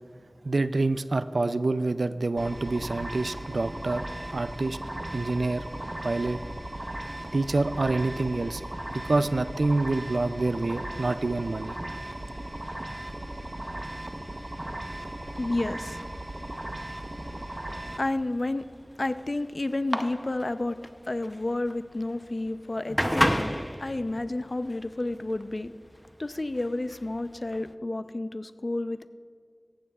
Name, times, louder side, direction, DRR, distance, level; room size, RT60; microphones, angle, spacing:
voice 1, 0.4-4.0 4.3-4.8 5.1-5.7 6.0-6.4 7.3-8.6 8.9-11.8, right 2 dB, 90° right, 12 dB, 0.3 m, -27 dB
sound 1, 2.4-18.0, right 1 dB, 40° right, 0.8 m, -37 dB
voice 2, 15.4-16.0 18.0-18.6 19.0-20.8 21.1-25.7 26.2-29.1, left 2 dB, 60° left, 11 dB, 0.5 m, -31 dB
sound 2, 17.9-27.7, equal, 5° left, 0.6 m, -32 dB
17.5 x 15.0 x 2.4 m, 2.1 s
wide cardioid pair, 40°, 0 cm